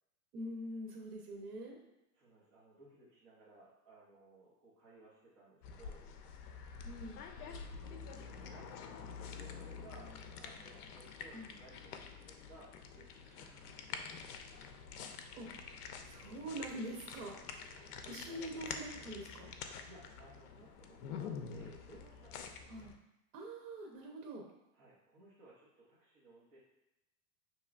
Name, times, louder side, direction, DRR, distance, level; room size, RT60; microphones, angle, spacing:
voice 1, 0.3-1.8 6.8-7.2 11.3-11.5 15.4-15.7 16.0-17.3 18.1-19.5 22.7-22.9 23.3-24.5, right 1 dB, 75° right, 0 dB, 1.0 m, -44 dB
voice 2, 2.1-6.0 7.4-14.1 17.7-18.5 19.8-22.6 24.7-26.6, right 2 dB, 20° right, -9 dB, 0.5 m, -60 dB
sound 1, 5.6-23.0, left 6 dB, 75° left, 0.6 m, -48 dB
5.6 x 2.9 x 2.4 m, 0.94 s
supercardioid pair, 165°, 47 cm